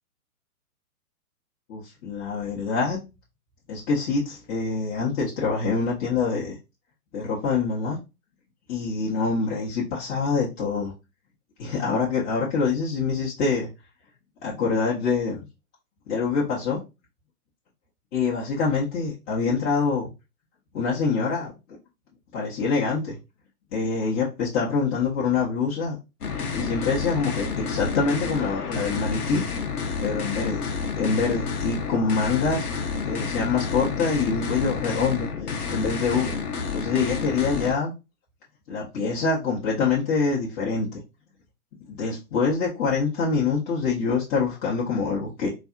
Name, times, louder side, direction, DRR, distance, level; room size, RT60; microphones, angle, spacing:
voice 1, 1.7-3.0 3.7-6.6 7.1-8.0 8.7-10.9 11.6-13.7 14.4-15.4 16.1-16.8 18.1-20.1 20.7-21.5 22.3-23.2 23.7-26.0 26.5-29.4 30.0-32.7 33.0-36.4 36.7-37.9 38.7-41.0 41.9-45.5, left 4 dB, 20° left, -6 dB, 0.7 m, -25 dB
sound 1, 26.2-37.7, left 5 dB, 85° left, 0.8 m, -30 dB
4.1 x 2.3 x 2.3 m, 0.26 s
hypercardioid pair, 120°, 44 cm